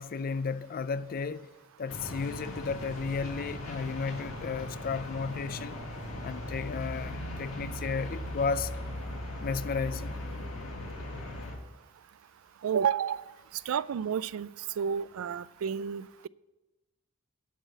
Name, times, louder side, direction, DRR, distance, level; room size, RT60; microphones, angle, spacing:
voice 1, 0.0-1.5 1.8-5.8 6.2-8.7 9.4-10.2, left 5 dB, 45° left, 0.4 m, -33 dB
sound 1, 1.9-11.6, left 1 dB, 75° left, 2.0 m, -38 dB
voice 2, 12.6-13.2 13.5-14.5 14.8-16.3, right 7 dB, 75° right, 0.3 m, -30 dB
10.5 x 5.6 x 8.4 m
head